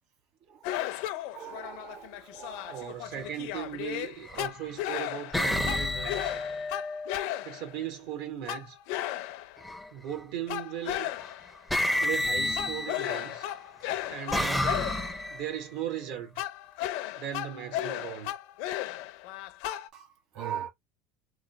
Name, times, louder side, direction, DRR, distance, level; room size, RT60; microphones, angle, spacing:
sound 1, 0.6-7.8 8.5-9.7 10.5-11.6 12.5-15.3 16.4-19.9, left 13 dB, 70° left, 0.5 m, -35 dB
voice 1, 1.3-3.0 19.9-20.7, right 9 dB, 55° right, 1.4 m, -40 dB
voice 2, 2.7-6.3 7.4-8.8 9.9-11.1 12.0-13.5 14.1-16.4 17.2-18.3, right 10 dB, 70° right, 1.0 m, -37 dB
sound 2, 3.1-3.3 4.2-4.7 5.3-7.4 9.6-10.1 11.2-11.3 11.7-13.3 13.9-15.6, left 1 dB, ahead, 0.4 m, -31 dB
3.1 x 2.3 x 3.9 m
cardioid pair, 155°, 0 cm